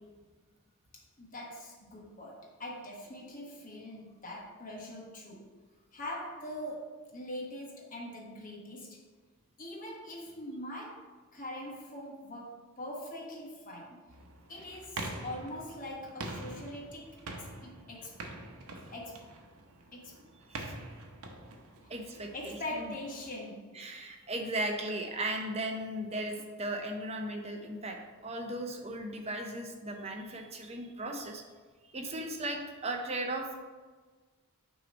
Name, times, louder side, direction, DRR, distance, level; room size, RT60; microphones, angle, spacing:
voice 1, 0.9-5.5 5.9-9.0 9.6-14.0 14.5-18.2 18.9-19.4 19.9-20.3 21.8-21.9 22.3-23.9, left 1 dB, 35° left, -1 dB, 1.1 m, -43 dB
sound 1, 14.1-23.3, right 2 dB, 80° right, 0.8 m, -45 dB
voice 2, 21.9-22.9 23.7-28.0 28.2-31.4 31.9-33.6, right 1 dB, 30° right, 3 dB, 0.6 m, -37 dB
6.4 x 3.0 x 5.1 m, 1.4 s
head